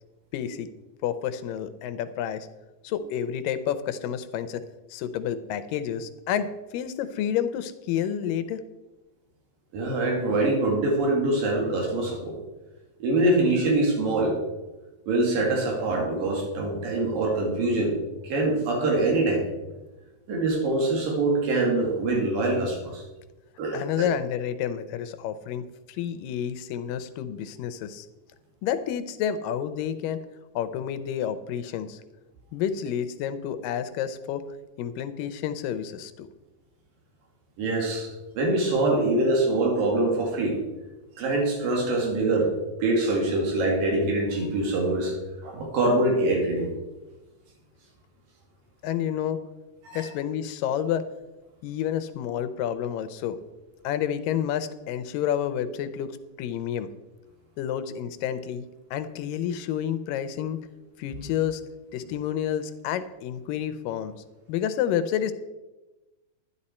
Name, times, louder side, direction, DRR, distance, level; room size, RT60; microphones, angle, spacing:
voice 1, 0.3-0.7 1.0-2.5 2.8-4.6 4.9-8.6 23.7-28.1 28.6-30.2 30.6-32.0 32.5-34.5 34.8-36.3 48.8-49.4 49.9-51.1 51.6-53.4 53.8-56.9 57.6-58.7 58.9-60.6 61.0-61.6 61.9-64.1 64.5-65.3, left 9 dB, 90° left, 12 dB, 2.4 m, -29 dB
voice 2, 9.7-12.4 13.0-14.4 15.1-17.9 18.2-19.5 20.3-23.0 23.6-24.1 37.6-40.6 41.2-42.5 42.8-45.1 45.4-46.7 49.8-50.1 61.0-61.2, right 2 dB, 85° right, -1 dB, 3.9 m, -24 dB
11.0 x 11.0 x 4.3 m, 1.1 s
omnidirectional pair, 3.8 m